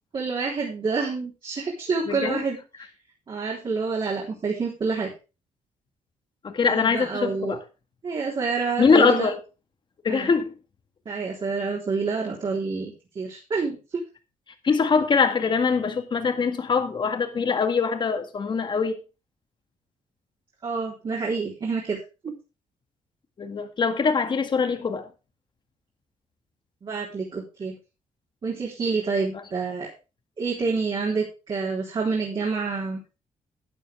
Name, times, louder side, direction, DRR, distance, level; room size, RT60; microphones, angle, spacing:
voice 1, 0.1-2.9 3.3-5.1 6.6-7.6 8.0-9.3 10.1-10.3 11.1-14.0 20.6-22.3 26.8-27.7 28.4-29.9 30.4-33.0, right 4 dB, 40° right, 3.8 m, -28 dB
voice 2, 2.1-2.4 6.4-7.6 8.8-9.4 10.0-10.5 14.6-19.0 23.4-25.1, left 5 dB, 35° left, 2.0 m, -23 dB
12.5 x 10.5 x 3.6 m
cardioid pair, 130°, 13 cm